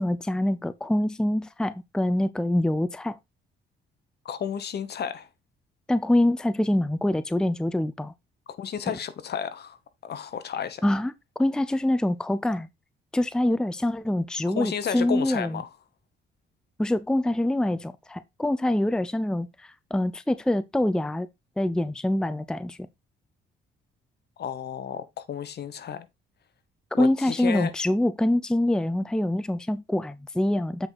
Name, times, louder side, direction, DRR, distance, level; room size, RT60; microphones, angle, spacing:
voice 1, 0.0-3.2 5.9-8.1 10.8-11.1 11.4-12.7 13.1-15.6 16.8-21.3 21.6-22.8 27.0-30.9, left 1 dB, 5° left, 0.5 m, -25 dB
voice 2, 4.2-5.3 8.5-9.8 10.0-10.9 14.5-15.7 24.4-26.1 26.9-27.7, left 8 dB, 55° left, 1.1 m, -32 dB
8.0 x 4.8 x 4.0 m
cardioid pair, 90°, 20 cm